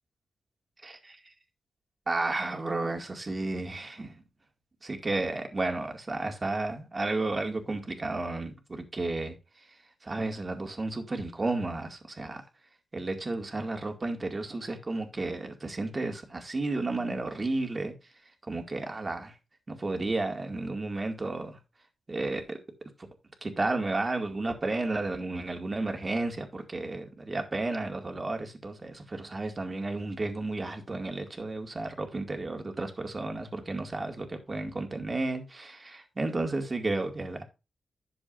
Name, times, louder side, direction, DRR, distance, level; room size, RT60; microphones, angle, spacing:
voice 1, 0.8-1.3 2.1-4.2 4.8-9.7 10.0-12.4 12.9-17.9 18.5-19.4 19.7-21.6 22.1-22.6 23.4-37.4, right 2 dB, 30° right, 2.2 m, -32 dB
11.0 x 7.2 x 2.6 m
wide cardioid pair, 105°, 0 cm